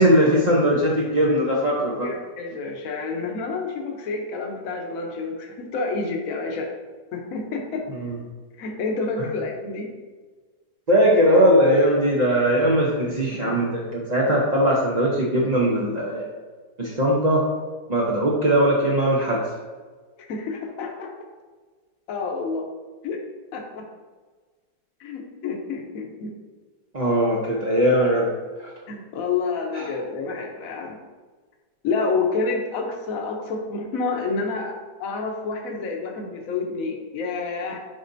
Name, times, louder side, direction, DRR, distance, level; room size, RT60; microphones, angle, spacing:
voice 1, 0.0-2.1 7.9-8.1 10.9-16.3 16.8-17.4 17.9-19.4 26.9-28.3 28.6-28.7 29.7-29.9, equal, 45° right, -4 dB, 0.5 m, -20 dB
voice 2, 2.0-6.7 7.1-7.8 8.6-9.9 20.3-21.1 22.1-22.7 23.0-23.2 23.5-23.8 25.0-26.3 28.9-31.0 31.8-37.8, left 4 dB, 60° left, 1 dB, 1.2 m, -28 dB
7.4 x 5.3 x 2.7 m, 1.4 s
omnidirectional pair, 1.8 m